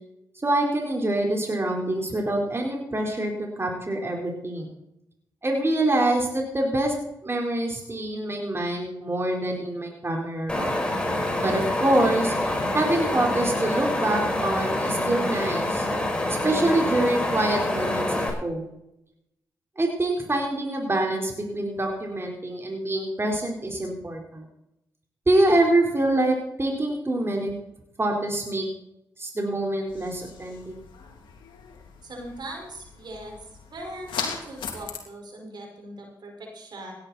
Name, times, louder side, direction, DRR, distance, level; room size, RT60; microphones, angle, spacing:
voice 1, 0.4-3.3 3.6-4.7 5.4-6.9 7.2-10.8 11.4-15.9 16.3-18.7 19.8-24.4 25.3-27.5 28.0-28.7 29.2-30.7, right 1 dB, 30° right, 1 dB, 4.4 m, -25 dB
Wind, 10.5-18.3, left 1 dB, 10° left, 5.0 m, -26 dB
sound 1, 29.9-35.0, left 6 dB, 80° left, 2.8 m, -38 dB
voice 2, 32.0-33.4 33.7-36.9, right 1 dB, 60° right, 1 dB, 5.2 m, -40 dB
17.0 x 11.5 x 4.3 m, 0.82 s
supercardioid pair, 45°, 8 cm